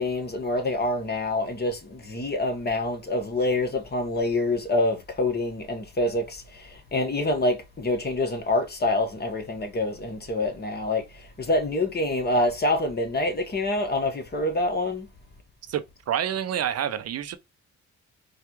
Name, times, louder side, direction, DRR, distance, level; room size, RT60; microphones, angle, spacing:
voice 1, 0.0-15.1, left 2 dB, 35° left, 1.3 m, -26 dB
voice 2, 15.7-17.4, right 9 dB, 55° right, 0.6 m, -28 dB
4.6 x 2.4 x 2.9 m
cardioid pair, 90°, 30 cm